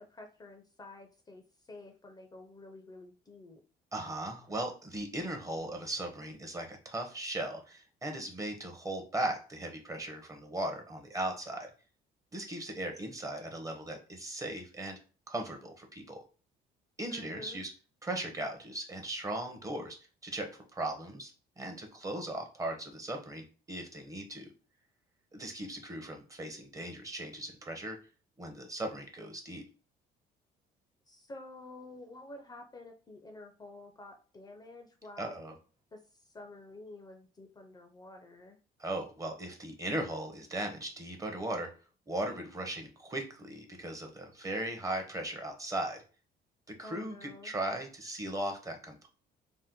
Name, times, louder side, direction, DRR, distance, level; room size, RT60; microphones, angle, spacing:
voice 1, 0.0-3.6 17.1-17.6 31.1-35.4 35.9-38.6 46.8-47.5, left 2 dB, 25° left, 4 dB, 0.4 m, -50 dB
voice 2, 3.9-11.7 12.3-15.0 15.3-16.2 17.0-17.7 18.0-20.0 20.2-21.3 21.6-24.5 25.3-28.0 28.4-29.6 35.2-35.5 38.8-41.7 42.1-46.0 46.7-49.1, right 1 dB, 20° right, 4 dB, 0.6 m, -38 dB
2.7 x 2.1 x 3.5 m, 0.37 s
cardioid pair, 110°, 17 cm